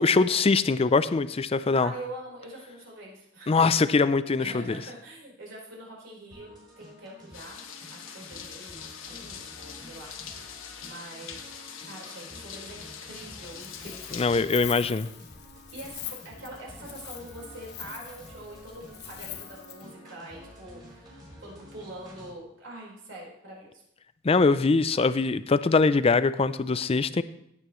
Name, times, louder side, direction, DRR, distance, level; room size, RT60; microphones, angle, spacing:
voice 1, 0.0-1.9 3.5-4.8 14.1-15.1 24.2-27.2, left 4 dB, 30° left, 14 dB, 0.4 m, -22 dB
voice 2, 1.5-3.6 4.4-7.6 7.9-10.1 10.5-14.7 15.7-23.8, right 1 dB, 65° right, -2 dB, 4.4 m, -44 dB
sound 1, 6.3-22.3, equal, 20° right, 4.8 m, -50 dB
sound 2, 7.3-14.4, left 7 dB, 80° left, 1.1 m, -43 dB
Wind, 13.4-19.9, left 11 dB, 55° left, 0.8 m, -43 dB
16.5 x 8.9 x 3.1 m, 0.75 s
head